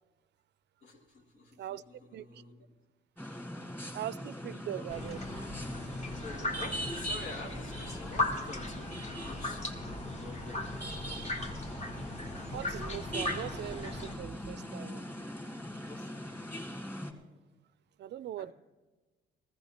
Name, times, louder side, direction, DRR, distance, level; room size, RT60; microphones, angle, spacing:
voice 1, 0.8-2.7 3.2-3.8 4.2-4.3 4.5-4.9 6.1-10.7 15.8-16.3 18.4-18.5, left 3 dB, 70° left, 2.0 m, -48 dB
voice 2, 2.1-2.4 3.9-5.2 12.3-15.0 18.0-18.5, right 12 dB, 60° right, 0.4 m, -41 dB
sound 1, 3.2-17.1, equal, 10° left, 2.1 m, -41 dB
sound 2, 4.9-14.2, left 2 dB, 35° left, 1.7 m, -38 dB
15.0 x 14.0 x 4.3 m
cardioid pair, 90°, 20 cm